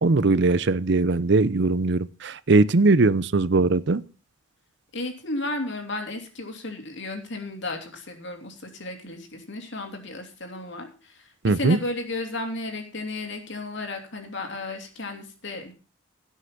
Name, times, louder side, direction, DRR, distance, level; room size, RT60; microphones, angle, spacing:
voice 1, 0.0-4.0 11.4-11.8, right 3 dB, 55° right, 0.6 m, -20 dB
voice 2, 4.9-15.7, left 2 dB, 60° left, 3.0 m, -33 dB
16.5 x 6.5 x 5.9 m
head